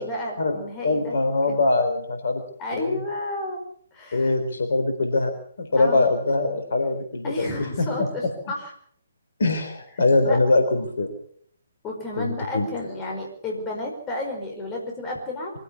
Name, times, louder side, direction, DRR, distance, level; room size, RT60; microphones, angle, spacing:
voice 1, 0.0-1.2 1.5-1.6 2.6-3.6 3.9-4.3 5.8-6.1 7.2-8.7 10.2-10.4 11.8-15.5, left 2 dB, 15° left, 0 dB, 5.0 m, -32 dB
voice 2, 0.8-2.4 2.7-3.0 4.1-5.3 5.6-7.9 9.4-11.1 12.2-12.7, left 2 dB, 55° left, 6 dB, 4.0 m, -22 dB
23.5 x 15.5 x 7.0 m, 0.62 s
figure-of-eight pair, 135°, 0 cm